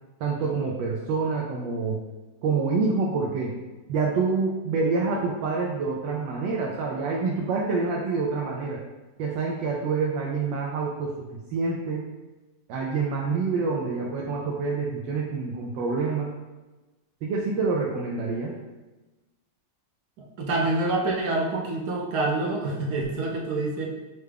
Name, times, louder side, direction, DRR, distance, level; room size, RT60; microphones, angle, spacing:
voice 1, 0.2-2.0 2.4-3.5 3.9-8.8 9.2-12.0 12.7-16.3 17.2-18.6, right 4 dB, 85° right, -2 dB, 1.3 m, -27 dB
voice 2, 20.2-23.9, right 2 dB, 65° right, -2 dB, 1.1 m, -27 dB
5.9 x 2.2 x 3.3 m, 1.1 s
omnidirectional pair, 2.0 m